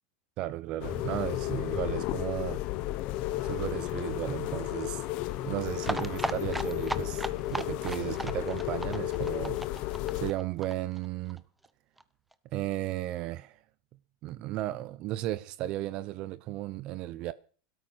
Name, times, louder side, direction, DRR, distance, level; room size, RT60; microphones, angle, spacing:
voice 1, 0.4-2.6 3.4-5.0 5.4-11.4 12.5-13.6 14.2-17.3, right 15 dB, 40° right, 0.8 m, -35 dB
sound 1, 0.8-10.3, left 15 dB, 45° left, 1.0 m, -33 dB
sound 2, 3.3-8.7, right 5 dB, 20° right, 2.4 m, -54 dB
sound 3, 5.8-11.4 11.6-11.7 12.0-12.1 12.3-12.4, right 1 dB, 5° right, 0.8 m, -36 dB
17.0 x 13.0 x 6.1 m
supercardioid pair, 150°, 2 cm